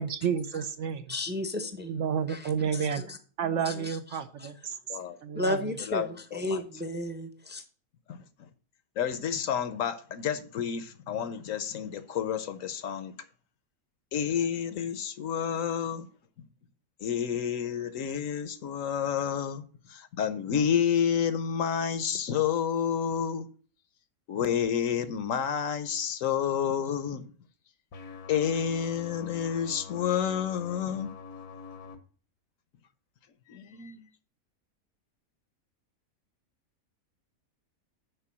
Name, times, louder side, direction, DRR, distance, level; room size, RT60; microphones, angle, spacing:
voice 1, 0.0-1.2 1.9-3.0 3.4-4.6 5.2-5.8, right 7 dB, 60° right, 0.9 m, -30 dB
voice 2, 1.1-1.9 2.3-2.4 3.0-3.1 3.7-3.8 5.3-6.0 6.3-7.6, left 1 dB, 10° right, 0.6 m, -32 dB
voice 3, 5.8-6.6 8.1-8.5 9.0-13.1 14.1-16.1 17.0-23.5 24.3-27.2 28.3-31.1 33.5-34.1, left 8 dB, 65° left, 1.1 m, -30 dB
sound 1, 27.9-32.0, left 5 dB, 85° left, 1.6 m, -44 dB
6.8 x 5.1 x 7.2 m
omnidirectional pair, 1.5 m